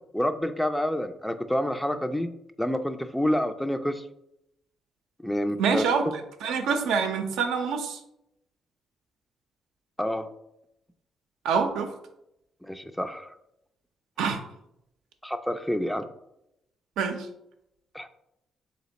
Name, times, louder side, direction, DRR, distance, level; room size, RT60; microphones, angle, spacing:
voice 1, 0.1-2.3 2.6-4.1 5.2-5.8 10.0-10.3 12.6-13.4 15.2-16.1 17.9-18.1, equal, 5° left, 9 dB, 0.3 m, -28 dB
voice 2, 5.6-6.0 6.4-8.0 11.4-11.9 14.2-14.4 17.0-17.3, right 5 dB, 90° right, 5 dB, 0.6 m, -25 dB
3.5 x 3.0 x 4.0 m, 0.80 s
cardioid pair, 90°, 0 cm